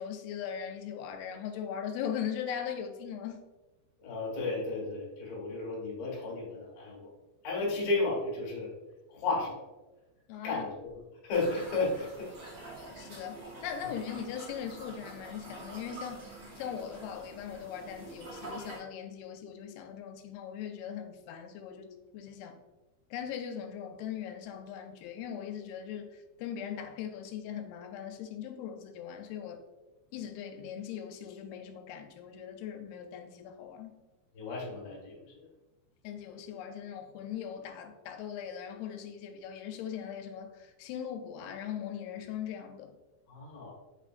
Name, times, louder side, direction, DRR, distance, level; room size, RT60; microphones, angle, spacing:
voice 1, 0.0-3.4 10.3-10.6 12.8-16.3 16.6-22.6 23.1-29.6 30.1-34.0 36.0-42.9, left 8 dB, 85° left, 2.5 m, -40 dB
voice 2, 4.0-7.1 7.4-8.7 9.1-9.6 10.4-11.0 11.2-12.3 34.3-35.5 43.3-43.7, left 3 dB, 55° left, 1.4 m, -33 dB
sound 1, 11.3-18.8, right 2 dB, 85° right, 0.8 m, -47 dB
5.6 x 3.4 x 2.5 m
omnidirectional pair, 4.5 m